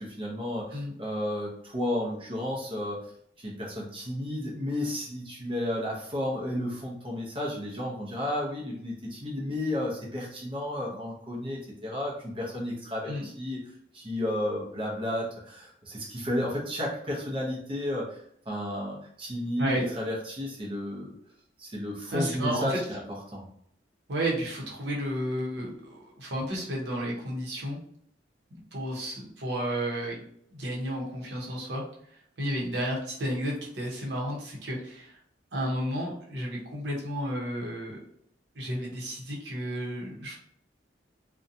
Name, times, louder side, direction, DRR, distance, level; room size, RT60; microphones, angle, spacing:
voice 1, 0.0-3.0 3.4-18.2 18.5-21.1 21.6-23.0 23.3-23.5, left 1 dB, 30° right, -3 dB, 0.6 m, -32 dB
voice 2, 22.1-22.8 24.1-27.8 28.7-30.2 30.5-31.8 32.4-35.2 35.5-38.0 38.5-40.4, equal, 70° right, -3 dB, 0.8 m, -32 dB
2.6 x 2.2 x 2.6 m, 0.67 s
head